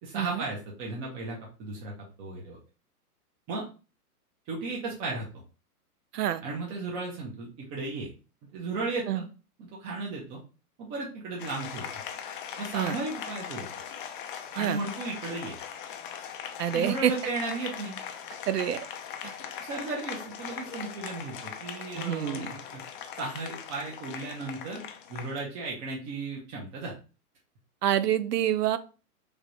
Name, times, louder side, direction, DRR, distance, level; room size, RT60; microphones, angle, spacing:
voice 1, 0.0-2.6 3.5-3.6 4.5-5.3 6.4-8.1 8.5-9.2 9.6-10.4 10.8-11.9 12.6-13.7 14.5-15.6 16.7-18.0 19.6-22.8 23.2-24.8 25.1-26.9, right 3 dB, 20° right, -3 dB, 0.5 m, -35 dB
Applause, 11.4-25.4, left 8 dB, 35° left, 0.4 m, -40 dB
voice 2, 16.6-17.1 18.5-18.8 19.2-19.3 21.9-22.5 27.8-28.8, right 11 dB, 90° right, 13 dB, 0.6 m, -27 dB
3.3 x 2.2 x 3.8 m, 0.34 s
hypercardioid pair, 125°, 46 cm